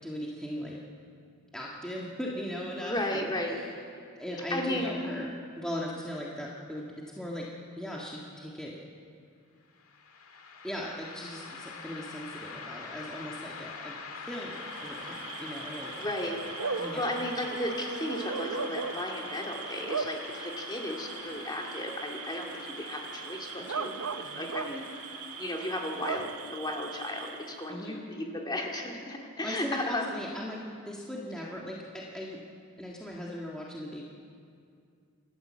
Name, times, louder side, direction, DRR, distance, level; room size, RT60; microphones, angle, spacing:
voice 1, 0.0-0.8 1.5-3.7 4.2-7.5 7.8-8.8 10.6-15.9 16.8-17.2 27.7-28.0 29.4-32.4 32.8-34.0, equal, 5° left, -4 dB, 1.7 m, -38 dB
voice 2, 2.8-3.6 4.5-4.9 16.0-16.4 16.7-24.0 24.4-24.9 25.4-30.0, left 1 dB, 20° left, 0 dB, 2.3 m, -34 dB
sound 1, 9.8-26.2, left 4 dB, 85° left, 1.9 m, -44 dB
Bark / Cricket, 14.4-27.7, right 5 dB, 85° right, 0.8 m, -39 dB
28.5 x 13.0 x 7.5 m, 2.3 s
head